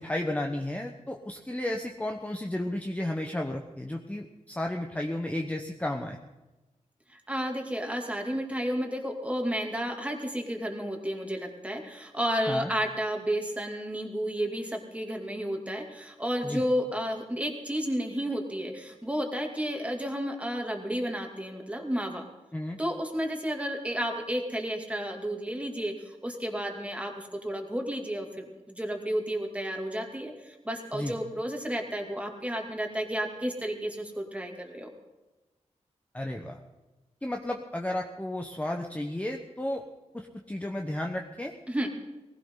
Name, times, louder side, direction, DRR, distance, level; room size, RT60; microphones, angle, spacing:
voice 1, 0.0-6.2 12.5-12.7 16.4-16.6 22.5-22.8 30.9-31.2 36.1-36.6 37.2-39.8 40.1-41.5, left 1 dB, 10° left, 2 dB, 1.1 m, -33 dB
voice 2, 7.1-22.2 22.8-34.9 41.7-41.9, equal, 10° right, 2 dB, 2.6 m, -32 dB
18.5 x 16.0 x 3.9 m, 1.1 s
wide cardioid pair, 80°, 12 cm